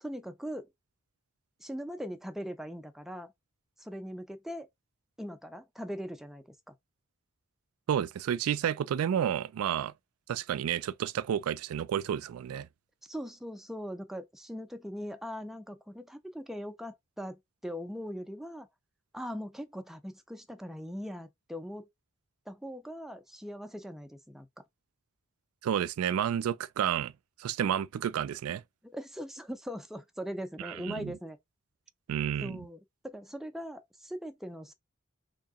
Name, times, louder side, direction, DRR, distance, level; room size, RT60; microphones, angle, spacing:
voice 1, 0.0-0.7 1.6-3.3 3.8-4.7 5.2-6.8 13.0-18.7 19.1-21.9 22.5-24.5 28.8-31.4 32.4-34.7, equal, ahead, 0.4 m, -40 dB
voice 2, 7.9-9.9 10.3-12.7 25.6-27.1 27.4-28.6 30.6-31.1 32.1-32.6, right 9 dB, 85° right, 0.3 m, -30 dB
3.6 x 2.8 x 3.5 m
head